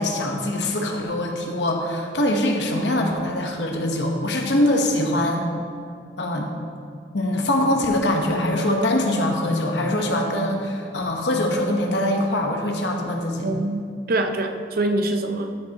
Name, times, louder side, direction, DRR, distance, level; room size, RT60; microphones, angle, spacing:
voice 1, 0.0-5.5 6.2-6.5 7.1-13.5, left 1 dB, 80° left, 2 dB, 1.1 m, -23 dB
voice 2, 13.4-15.5, right 2 dB, 55° right, 7 dB, 0.6 m, -24 dB
13.0 x 6.3 x 3.0 m, 2.3 s
head